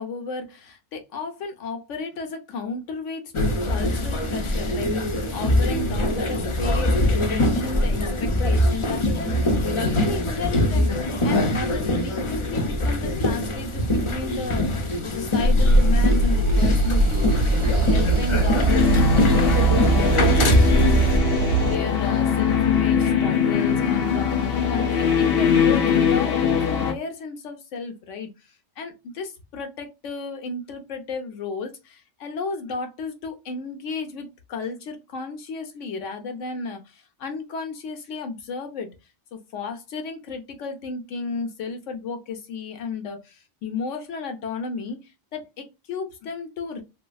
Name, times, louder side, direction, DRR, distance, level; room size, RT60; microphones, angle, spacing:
voice 1, 0.0-11.0 11.2-17.3 17.7-28.3 28.8-38.9 39.3-46.8, left 4 dB, 85° left, 1.2 m, -34 dB
sound 1, 3.3-21.2, left 1 dB, 45° left, 0.4 m, -23 dB
sound 2, 15.4-21.8, right 3 dB, 60° right, 0.8 m, -21 dB
sound 3, 18.7-26.9, left 7 dB, 60° left, 0.8 m, -21 dB
3.1 x 2.7 x 2.2 m
omnidirectional pair, 1.2 m